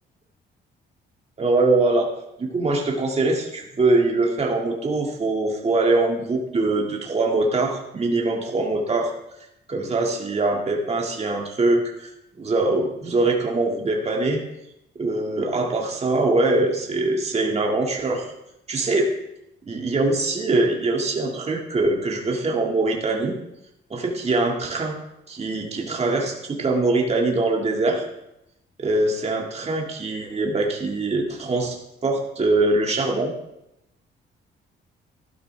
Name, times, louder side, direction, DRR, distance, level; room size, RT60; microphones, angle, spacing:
voice 1, 1.4-2.1 2.4-9.1 9.7-12.1 12.4-14.4 15.0-18.3 18.7-19.1 19.7-23.3 23.9-24.9 25.3-28.0 28.8-33.3, right 2 dB, 30° right, 0 dB, 2.1 m, -23 dB
13.5 x 12.5 x 3.4 m, 0.86 s
cardioid pair, 90°, 20 cm